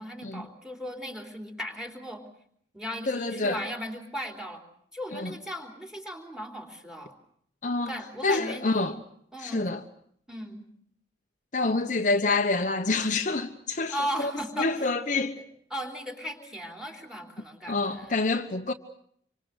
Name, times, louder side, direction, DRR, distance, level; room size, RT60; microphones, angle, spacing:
voice 1, 0.0-2.2 2.7-4.6 4.9-7.1 7.8-8.9 9.3-9.6 10.3-10.7 13.9-14.9 15.7-18.2, equal, 5° right, 3.5 m, -37 dB
voice 2, 3.1-3.6 5.1-5.3 7.6-7.9 8.2-9.0 9.4-9.8 11.5-14.3 14.6-15.4 17.7-18.7, left 3 dB, 45° left, 1.0 m, -27 dB
26.5 x 25.0 x 6.5 m
head